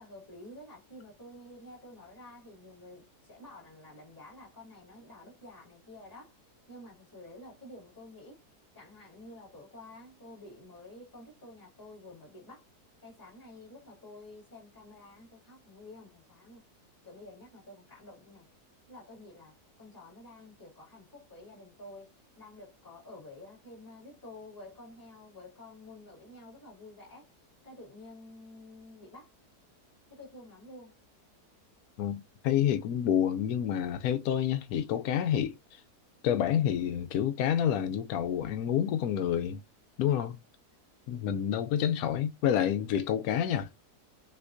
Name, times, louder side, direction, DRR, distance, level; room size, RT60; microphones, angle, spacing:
voice 1, 0.0-6.4 6.7-8.4 8.7-12.6 13.0-16.6 17.0-18.5 18.9-27.3 27.6-29.3 30.1-30.9, left 1 dB, 10° left, 2.7 m, -50 dB
voice 2, 32.0-35.6 36.2-39.6 40.0-40.4 41.1-43.7, left 9 dB, 70° left, 1.1 m, -28 dB
5.6 x 3.0 x 2.6 m
omnidirectional pair, 1.7 m